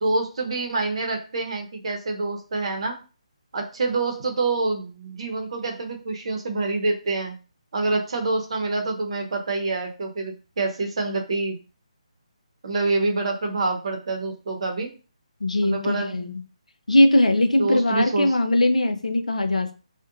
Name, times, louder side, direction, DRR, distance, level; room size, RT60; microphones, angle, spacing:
voice 1, 0.0-3.0 3.5-7.3 7.7-11.6 12.6-14.9 15.6-16.3 17.6-18.3, right 3 dB, 55° right, 3 dB, 0.7 m, -26 dB
voice 2, 15.4-16.4 16.9-19.7, left 1 dB, 85° left, 6 dB, 0.4 m, -20 dB
2.5 x 2.1 x 2.5 m, 0.34 s
figure-of-eight pair, 150°, 4 cm